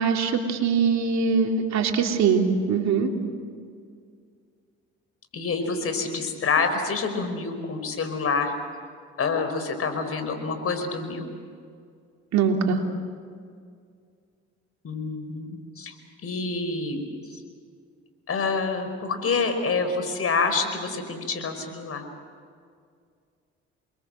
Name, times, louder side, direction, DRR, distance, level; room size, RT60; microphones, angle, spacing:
voice 1, 0.0-3.1 12.3-12.8, right 5 dB, 65° right, 2 dB, 3.5 m, -22 dB
voice 2, 5.3-8.5 9.2-11.2 14.8-15.9 16.2-17.4 18.3-22.0, left 4 dB, 50° left, 7 dB, 5.3 m, -27 dB
28.5 x 23.5 x 7.9 m, 2.2 s
supercardioid pair, 65°, 30 cm